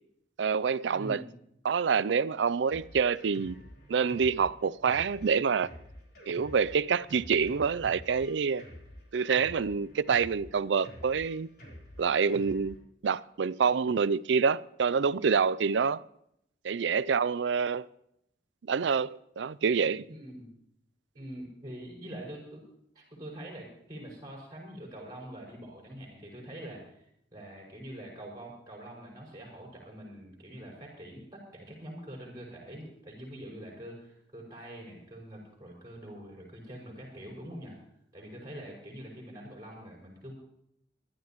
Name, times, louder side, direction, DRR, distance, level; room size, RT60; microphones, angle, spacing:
voice 1, 0.4-1.2 1.6-3.6 3.9-5.7 6.3-8.6 9.1-11.5 12.0-12.8 13.0-16.0 16.6-17.8 18.7-20.1, right 6 dB, 75° right, 0.4 m, -27 dB
voice 2, 0.9-1.3 20.1-20.5 21.1-22.7 22.9-37.8 38.1-40.3, right 1 dB, 20° right, 6.2 m, -45 dB
Drum kit, 2.7-12.8, equal, 55° left, 4.0 m, -49 dB
24.5 x 12.5 x 3.1 m
head